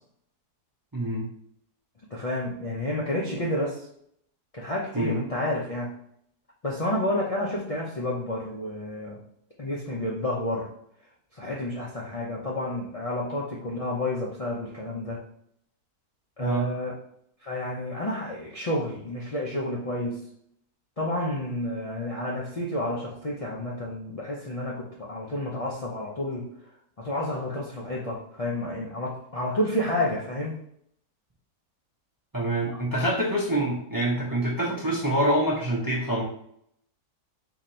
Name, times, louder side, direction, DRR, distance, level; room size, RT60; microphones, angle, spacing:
voice 1, 0.9-1.3 4.9-5.2 16.4-16.7 32.3-36.2, right 1 dB, 25° right, -4 dB, 0.5 m, -26 dB
voice 2, 2.1-3.9 4.5-5.9 6.6-9.2 9.6-10.7 11.3-15.2 16.4-16.9 17.4-20.2 21.0-26.5 27.0-30.6 32.7-32.8, left 1 dB, 70° left, -4 dB, 0.3 m, -30 dB
3.9 x 2.9 x 4.3 m, 0.69 s
omnidirectional pair, 1.7 m